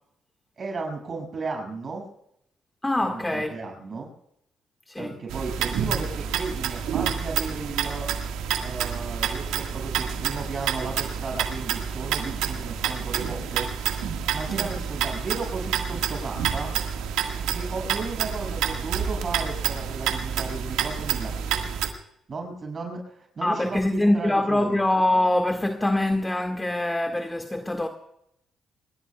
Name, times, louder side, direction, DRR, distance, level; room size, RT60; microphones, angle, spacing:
voice 1, 0.6-2.1 3.0-4.1 5.0-8.1 8.6-13.7 14.3-16.7 17.5-21.6 22.3-24.8, right 4 dB, 45° right, 6.5 m, -34 dB
voice 2, 2.8-3.5 4.9-5.2 14.6-14.7 23.4-27.9, left 1 dB, 15° left, 1.7 m, -24 dB
sound 1, 5.3-21.9, right 8 dB, 85° right, 1.7 m, -28 dB
26.5 x 21.0 x 2.3 m
supercardioid pair, 55°, 0 cm